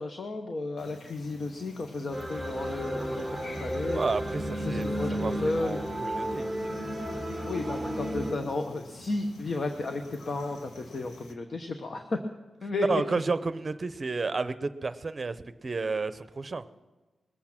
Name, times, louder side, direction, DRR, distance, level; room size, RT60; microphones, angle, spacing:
voice 1, 0.0-4.0 4.5-5.8 7.5-12.2 12.6-13.0, left 2 dB, 50° left, 5 dB, 1.1 m, -33 dB
sound 1, 0.8-11.3, left 3 dB, 85° left, 1.6 m, -49 dB
sound 2, 2.1-8.3, right 1 dB, 5° left, 2.0 m, -33 dB
voice 2, 3.9-6.5 12.9-15.4 15.6-16.6, right 4 dB, 35° right, 12 dB, 0.7 m, -31 dB
21.0 x 8.5 x 6.0 m, 1.2 s
wide cardioid pair, 100°, 0 cm